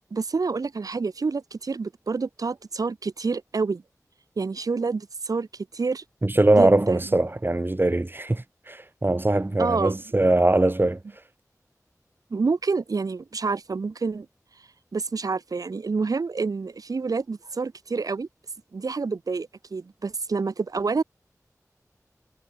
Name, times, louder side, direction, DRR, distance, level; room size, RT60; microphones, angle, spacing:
voice 1, 0.1-3.8 4.4-5.5 5.7-6.0 6.6-7.0 9.6-10.2 12.3-14.3 14.9-18.3 18.7-21.0, right 4 dB, 75° right, 0.6 m, -28 dB
voice 2, 6.2-11.0, right 2 dB, 35° right, 1.7 m, -21 dB
wide cardioid pair, 50°, 6 cm